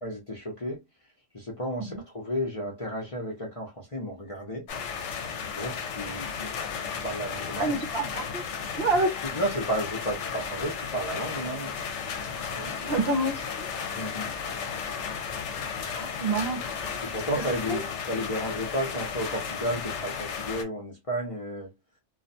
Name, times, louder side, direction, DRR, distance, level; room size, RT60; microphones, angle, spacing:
voice 1, 0.0-0.8 1.3-4.7 5.5-6.5 6.9-7.8 9.2-11.7 12.6-13.0 13.9-14.3 16.8-17.8 18.1-21.7, equal, 35° left, 0.6 m, -33 dB
sound 1, 4.7-20.6, left 6 dB, 75° left, 0.9 m, -34 dB
voice 2, 7.6-8.4 8.8-9.1 12.9-13.7 16.0-16.6 17.7-17.8, right 2 dB, 60° right, 0.8 m, -27 dB
2.4 x 2.2 x 2.6 m
omnidirectional pair, 1.3 m